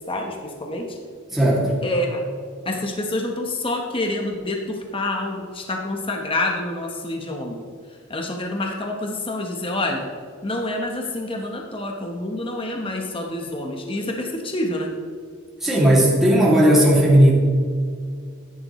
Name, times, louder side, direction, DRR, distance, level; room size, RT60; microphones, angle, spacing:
voice 1, 0.1-1.0 1.8-2.2 2.6-7.6 8.1-10.1 10.4-14.9, left 1 dB, 25° left, 2 dB, 1.0 m, -27 dB
voice 2, 1.3-1.7 15.6-17.3, right 1 dB, ahead, -6 dB, 2.3 m, -15 dB
13.5 x 10.5 x 3.1 m, 2.1 s
head